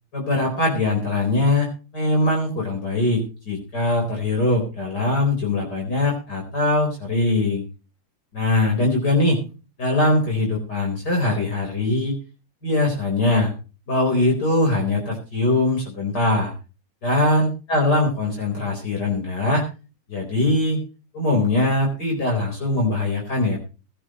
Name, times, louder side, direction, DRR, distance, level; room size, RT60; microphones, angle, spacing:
voice 1, 0.1-7.6 8.3-9.4 9.8-12.1 12.6-13.5 13.9-16.5 17.0-19.6 20.1-20.8 21.1-23.6, left 2 dB, 50° left, 0 dB, 4.9 m, -21 dB
20.0 x 11.5 x 3.1 m, 0.33 s
omnidirectional pair, 2.3 m